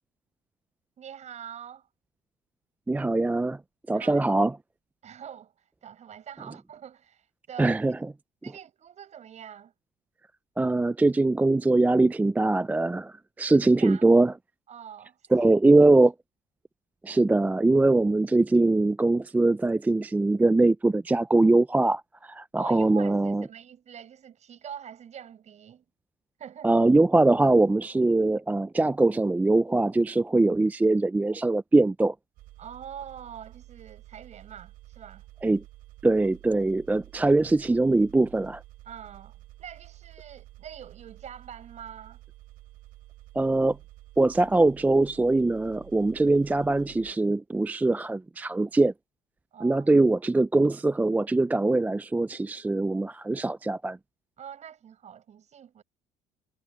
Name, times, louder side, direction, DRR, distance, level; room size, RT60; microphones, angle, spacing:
voice 1, 1.0-1.9 3.9-4.2 5.0-7.8 8.4-9.7 13.5-14.0 14.7-15.9 22.5-23.2 23.4-25.8 26.4-26.7 32.6-35.2 38.9-42.2 49.5-49.9 54.4-55.8, right 9 dB, 50° right, 7.8 m, -44 dB
voice 2, 2.9-3.6 3.9-4.6 7.6-8.1 10.6-14.3 15.3-16.1 17.0-23.4 26.6-32.2 35.4-35.6 36.0-38.6 43.3-43.8 44.2-48.9 49.6-54.0, right 2 dB, 10° right, 0.4 m, -22 dB
sound 1, 32.4-47.1, right 17 dB, 75° right, 5.1 m, -50 dB
supercardioid pair, 90°, 15 cm